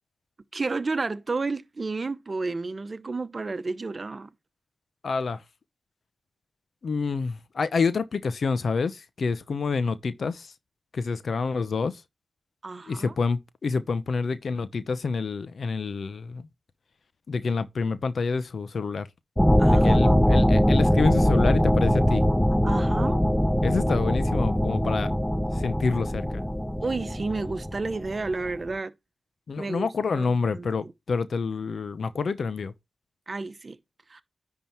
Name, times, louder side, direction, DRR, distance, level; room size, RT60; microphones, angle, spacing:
voice 1, 0.5-4.3 12.6-13.1 19.6-20.2 22.6-23.2 26.8-28.9 29.6-29.9 30.1-30.3 30.5-30.9 33.3-33.8 34.1-34.2, right 3 dB, 45° right, 0.9 m, -31 dB
voice 2, 5.0-5.4 6.8-10.5 10.9-12.0 12.9-16.5 17.3-19.1 19.7-22.2 23.6-25.1 25.5-26.4 29.5-32.7, left 4 dB, 70° left, 0.8 m, -28 dB
sound 1, 19.4-28.5, equal, 5° left, 0.7 m, -22 dB
10.0 x 3.8 x 4.5 m
cardioid pair, 45°, 0 cm